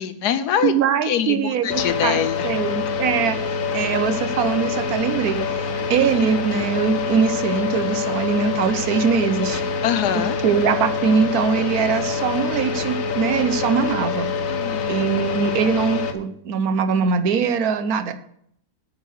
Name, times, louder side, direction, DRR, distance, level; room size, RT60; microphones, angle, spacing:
voice 1, 0.0-0.7 1.0-2.5 9.8-10.4 14.5-15.0, left 9 dB, 75° left, 11 dB, 1.3 m, -24 dB
voice 2, 0.6-2.2 2.4-3.4 3.7-9.6 10.4-14.3 14.9-18.1, right 6 dB, 70° right, 10 dB, 1.2 m, -22 dB
sound 1, 1.7-16.1, left 5 dB, 60° left, 1.3 m, -25 dB
8.7 x 5.5 x 7.9 m, 0.69 s
omnidirectional pair, 1.8 m